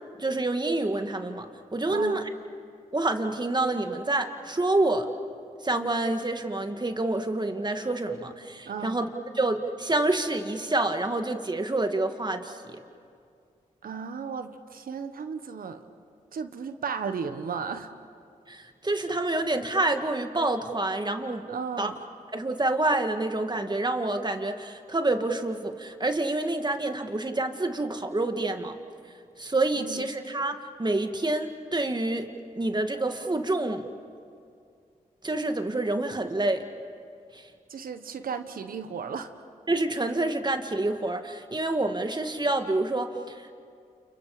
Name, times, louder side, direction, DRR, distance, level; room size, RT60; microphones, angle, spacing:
voice 1, 0.2-2.2 2.9-5.1 5.6-9.1 9.4-12.8 18.5-21.5 21.8-21.9 22.3-28.8 29.4-32.3 32.6-33.8 35.2-36.6 37.3-37.5 39.7-43.6, right 2 dB, 30° right, 6 dB, 2.2 m, -27 dB
voice 2, 1.9-2.2 8.6-9.0 13.8-15.8 16.3-17.9 21.5-22.0 29.7-30.0 37.7-39.3, right 6 dB, 75° right, 9 dB, 1.4 m, -34 dB
29.5 x 29.5 x 5.1 m, 2.3 s
cardioid pair, 45°, 15 cm